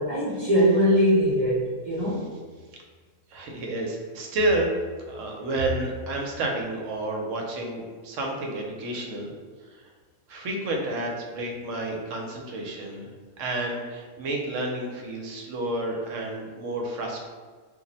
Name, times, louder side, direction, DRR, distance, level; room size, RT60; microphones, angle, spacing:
voice 1, 0.0-2.2, equal, 55° right, -10 dB, 0.4 m, -21 dB
voice 2, 3.3-4.7 5.0-9.3 9.7-9.9 10.3-13.1 13.4-17.2, right 2 dB, 70° right, 0 dB, 0.9 m, -30 dB
2.4 x 2.0 x 3.8 m, 1.5 s
omnidirectional pair, 1.4 m